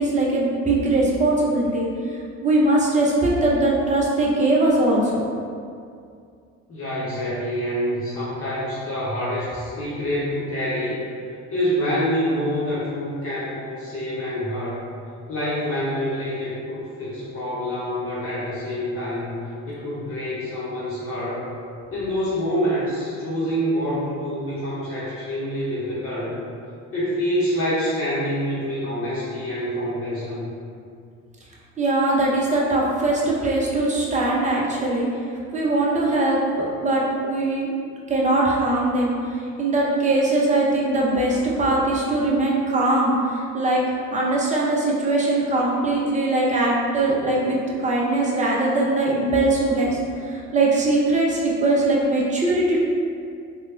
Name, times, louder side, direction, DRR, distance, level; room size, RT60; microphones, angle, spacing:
voice 1, 0.0-5.2 31.8-35.1 35.5-37.7 38.1-43.8 44.1-47.6 47.8-52.8, right 2 dB, 20° right, -4 dB, 0.7 m, -21 dB
voice 2, 6.7-11.0 11.5-14.8 15.3-19.3 19.7-21.4 21.9-26.4 26.9-30.4, equal, 35° left, -9 dB, 0.9 m, -26 dB
3.2 x 2.3 x 2.6 m, 2.3 s
hypercardioid pair, 60°, 38 cm